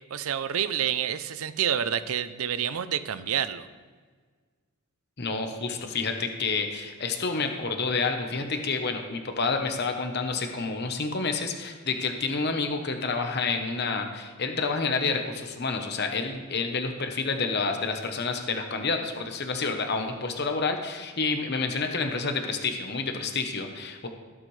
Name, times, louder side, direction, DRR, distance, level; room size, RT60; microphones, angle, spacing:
voice 1, 0.1-3.7, right 9 dB, 80° right, 13 dB, 0.5 m, -28 dB
voice 2, 5.2-24.1, left 4 dB, 50° left, 5 dB, 1.0 m, -29 dB
17.5 x 7.4 x 3.3 m, 1.5 s
head